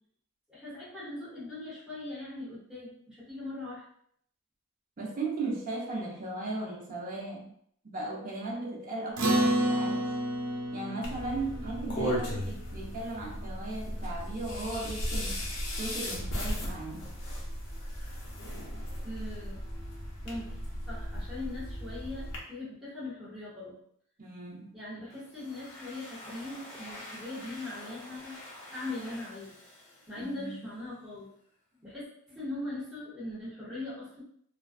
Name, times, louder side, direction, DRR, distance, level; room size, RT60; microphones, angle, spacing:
voice 1, 0.5-3.8 19.0-19.6 20.2-20.6 20.9-23.8 24.7-28.4 28.7-29.6 30.1-31.3 31.8-34.2, left 2 dB, ahead, -11 dB, 1.0 m, -40 dB
voice 2, 5.0-7.5 7.8-10.1 10.7-15.4 15.8-17.0 24.2-24.7 30.2-30.6, right 2 dB, 40° right, -2 dB, 0.6 m, -37 dB
Acoustic guitar, 9.2-13.9, right 1 dB, 80° right, 0.6 m, -31 dB
sound 1, 11.0-22.4, equal, 70° left, 0.8 m, -36 dB
Domestic sounds home sounds, 25.1-30.7, left 1 dB, 30° left, 1.0 m, -48 dB
2.4 x 2.2 x 2.4 m, 0.65 s
head